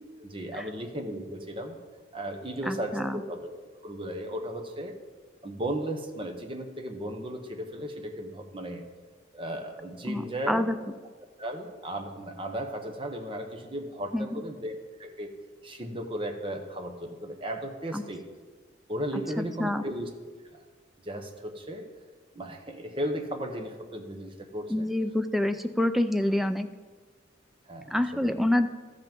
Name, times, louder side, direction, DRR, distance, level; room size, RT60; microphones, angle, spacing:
voice 1, 0.2-1.8 2.1-3.5 3.8-4.9 5.4-8.8 9.3-10.6 11.4-14.7 15.0-15.3 15.6-18.2 18.9-20.1 20.5-20.6 21.0-21.8 22.3-24.9 27.7-28.4, right 1 dB, 25° right, 5 dB, 1.0 m, -35 dB
voice 2, 2.6-3.2 10.0-10.8 14.1-14.4 17.9-18.0 19.6-19.8 24.7-26.7 27.9-28.7, left 1 dB, ahead, 10 dB, 0.3 m, -27 dB
13.5 x 5.8 x 5.2 m, 1.4 s
head